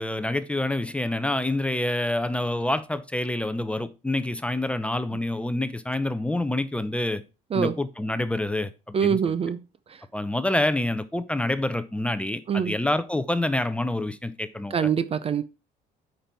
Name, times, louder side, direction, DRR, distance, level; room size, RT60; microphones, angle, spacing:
voice 1, 0.0-7.2 7.5-9.2 10.1-14.9, left 1 dB, 5° left, 0.7 m, -27 dB
voice 2, 8.9-9.6 12.5-12.7 14.7-15.4, right 7 dB, 35° right, 0.6 m, -24 dB
8.7 x 5.4 x 4.5 m
cardioid pair, 110°, 17 cm